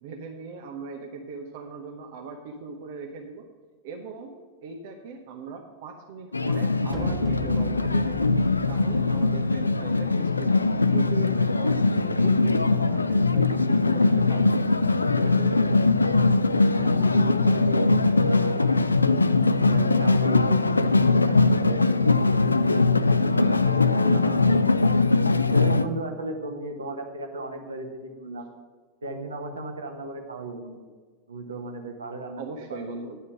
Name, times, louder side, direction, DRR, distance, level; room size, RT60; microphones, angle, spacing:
voice 1, 0.0-3.5 3.8-8.3 8.7-14.8 15.2-15.8 32.4-33.2, right 5 dB, 50° right, 3 dB, 0.9 m, -39 dB
sound 1, 6.3-25.8, left 3 dB, 80° left, 0.4 m, -21 dB
sound 2, 6.9-10.9, left 1 dB, 10° right, 1.6 m, -38 dB
voice 2, 16.7-19.1 19.7-22.5 23.1-24.7 25.4-28.5 29.0-30.9 31.3-32.4 32.7-33.1, right 2 dB, 75° right, 4 dB, 1.3 m, -36 dB
10.5 x 5.6 x 6.2 m, 1.5 s
figure-of-eight pair, 90°, 0 cm